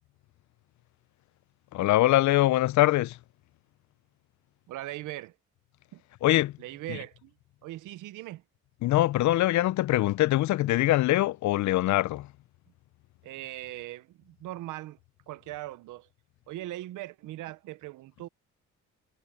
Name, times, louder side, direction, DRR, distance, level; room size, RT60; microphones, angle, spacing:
voice 1, 1.7-3.2 6.2-6.6 6.9-7.0 8.8-12.3, left 16 dB, 70° left, 0.5 m, -23 dB
voice 2, 4.7-5.3 5.9-6.0 6.6-7.3 7.6-8.4 13.2-15.0 15.3-16.1 16.5-18.3, right 15 dB, 85° right, 0.7 m, -40 dB
cardioid pair, 90°, 30 cm